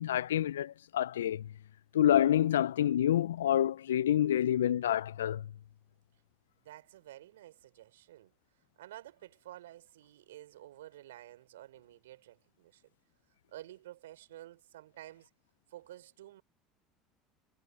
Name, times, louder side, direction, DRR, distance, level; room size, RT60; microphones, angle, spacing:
voice 1, 0.0-1.5 1.9-5.5, left 11 dB, 85° left, 0.4 m, -28 dB
voice 2, 6.6-8.3 8.8-12.8 13.5-15.3 15.7-16.4, right 14 dB, 80° right, 3.9 m, -51 dB
hypercardioid pair, 75°, 0 cm